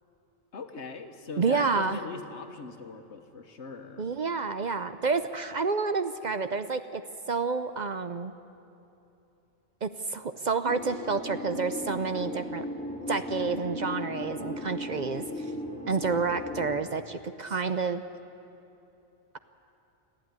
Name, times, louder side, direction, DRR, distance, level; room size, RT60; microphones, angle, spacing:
voice 1, 0.5-4.1, left 4 dB, 80° left, 7 dB, 1.6 m, -41 dB
voice 2, 1.4-2.0 4.0-7.0 7.3-8.3 9.8-12.7 13.1-15.5 15.9-18.0, right 4 dB, 50° right, 11 dB, 0.7 m, -29 dB
sound 1, 10.6-16.8, left 1 dB, 5° left, 2.3 m, -37 dB
23.5 x 14.0 x 9.6 m, 2.9 s
omnidirectional pair, 1.2 m